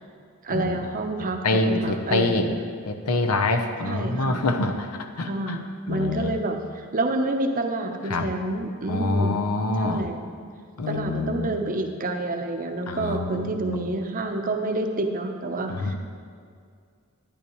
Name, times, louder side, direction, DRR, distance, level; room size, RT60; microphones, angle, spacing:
voice 1, 0.4-2.6 3.9-4.4 5.3-6.6 6.9-9.4 9.8-10.2 10.9-16.0, right 2 dB, 40° right, 4 dB, 0.7 m, -28 dB
voice 2, 1.4-2.5 2.9-5.6 5.9-6.3 8.1-8.3 8.9-10.0 10.8-11.5 12.9-13.8 15.7-16.0, left 2 dB, 80° left, 5 dB, 0.8 m, -25 dB
11.5 x 9.8 x 3.1 m, 2.2 s
head